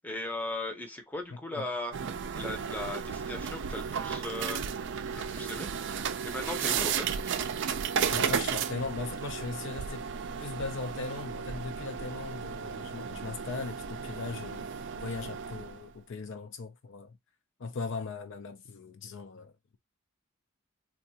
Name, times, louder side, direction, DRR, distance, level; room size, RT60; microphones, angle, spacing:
voice 1, 0.0-2.0 2.3-4.6 5.1-5.7 6.2-7.5, left 2 dB, 10° left, 0.7 m, -38 dB
sound 1, 1.9-15.9, right 7 dB, 55° right, 0.4 m, -34 dB
voice 2, 8.1-10.1 10.4-14.7 15.0-17.2 17.6-19.5, left 4 dB, 60° left, 0.5 m, -38 dB
3.7 x 2.3 x 2.7 m
head